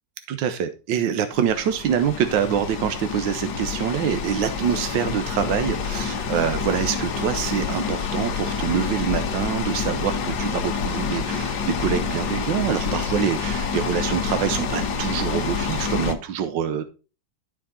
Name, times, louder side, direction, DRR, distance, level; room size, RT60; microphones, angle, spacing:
voice 1, 0.3-16.8, right 8 dB, 80° right, 9 dB, 1.5 m, -25 dB
sound 1, 1.3-16.1, left 6 dB, 70° left, 1.6 m, -27 dB
12.0 x 4.9 x 4.1 m, 0.33 s
omnidirectional pair, 2.0 m